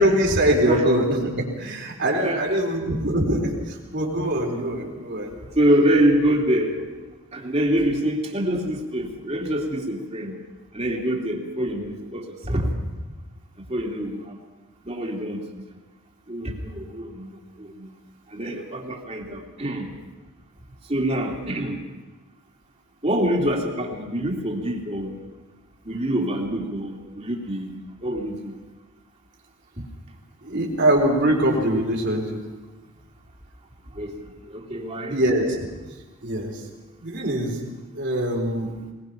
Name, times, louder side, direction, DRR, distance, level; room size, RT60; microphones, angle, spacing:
voice 1, 0.0-5.3 30.4-32.4 35.1-35.7 36.2-36.6 37.0-37.6 37.9-38.7, right 1 dB, 55° right, 0 dB, 4.2 m, -23 dB
voice 2, 2.1-2.6 5.5-6.8 7.3-10.4 10.7-12.8 13.7-14.4 14.8-15.6 16.3-17.9 18.3-19.9 20.9-21.8 23.0-25.2 25.8-28.5 29.8-29.9 33.9-35.2, right 1 dB, 30° right, 0 dB, 2.9 m, -25 dB
21.0 x 21.0 x 5.8 m, 1.2 s
head